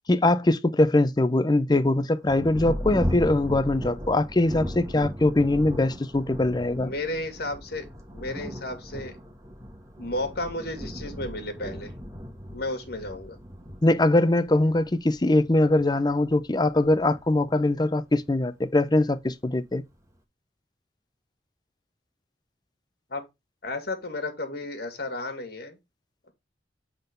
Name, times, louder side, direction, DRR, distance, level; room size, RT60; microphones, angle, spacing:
voice 1, 0.1-6.9 13.8-19.8, left 2 dB, 25° left, 0.6 m, -22 dB
Thunder, 2.2-18.3 19.1-19.2 19.7-20.2, equal, 20° right, 1.4 m, -37 dB
voice 2, 6.8-9.2 10.0-11.9 12.5-13.4 23.1-23.2 23.6-25.8, left 2 dB, 60° left, 2.1 m, -33 dB
8.0 x 3.8 x 5.2 m
head